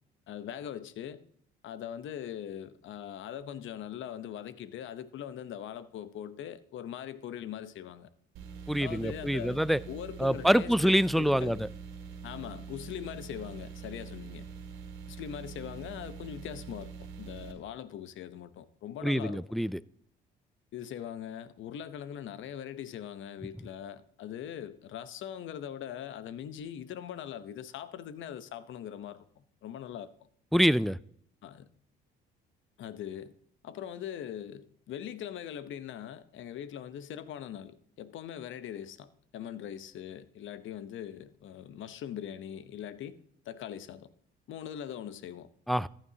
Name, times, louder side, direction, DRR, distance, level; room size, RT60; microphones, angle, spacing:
voice 1, 0.3-1.2 1.6-8.1 8.8-11.6 12.2-14.5 15.1-16.9 17.2-19.4 20.7-30.3 31.4-31.7 32.8-33.3 33.6-43.2 43.4-44.1 44.5-45.5, left 10 dB, 65° left, 0.8 m, -41 dB
sound 1, 8.3-17.5, right 6 dB, 80° right, 2.2 m, -44 dB
voice 2, 8.7-9.8 10.2-11.6 19.0-19.8 30.5-31.0 45.7-45.9, equal, ahead, 0.3 m, -25 dB
14.0 x 8.9 x 2.8 m
supercardioid pair, 70°, 21 cm